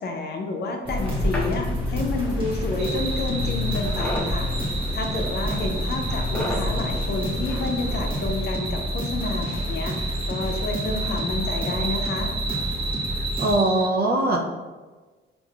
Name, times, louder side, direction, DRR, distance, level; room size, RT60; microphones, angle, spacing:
voice 1, 0.0-4.5 4.9-12.3, left 3 dB, 55° left, 3 dB, 0.6 m, -30 dB
sound 1, 0.8-13.6, equal, 25° right, 1.1 m, -29 dB
sound 2, 0.9-8.3, left 2 dB, 5° left, 0.8 m, -31 dB
sound 3, 2.8-13.9, right 2 dB, 70° right, 1.2 m, -33 dB
voice 2, 13.4-14.4, right 2 dB, 50° right, 1 dB, 0.6 m, -21 dB
4.6 x 2.6 x 2.3 m, 1.3 s
cardioid pair, 90°, 20 cm